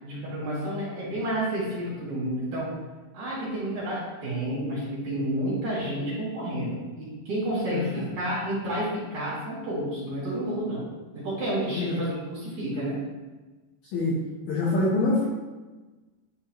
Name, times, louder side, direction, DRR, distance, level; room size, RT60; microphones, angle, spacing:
voice 1, 0.0-2.7 3.1-10.8 11.1-13.0, right 1 dB, 45° right, -10 dB, 2.9 m, -30 dB
voice 2, 7.7-8.1 11.7-12.0 13.9-14.2 14.5-15.3, left 2 dB, 80° left, -6 dB, 2.0 m, -25 dB
10.5 x 3.7 x 3.0 m, 1.2 s
omnidirectional pair, 5.6 m